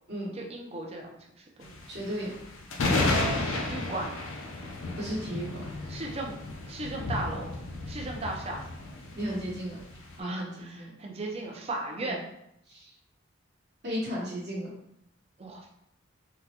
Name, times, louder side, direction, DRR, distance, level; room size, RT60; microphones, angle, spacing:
voice 1, 0.3-1.8 3.1-4.1 5.9-6.3 6.7-7.5 7.9-8.6 10.2-12.2 15.4-15.7, right 2 dB, 30° right, 0 dB, 0.4 m, -36 dB
sound 1, 1.6-10.1, left 2 dB, 75° left, 0.5 m, -32 dB
voice 2, 1.9-2.3 5.0-6.0 9.2-9.8 10.2-10.9 12.0-12.2 12.7-12.9 13.8-14.7, equal, 50° right, -6 dB, 1.0 m, -35 dB
3.7 x 2.1 x 2.8 m, 0.77 s
head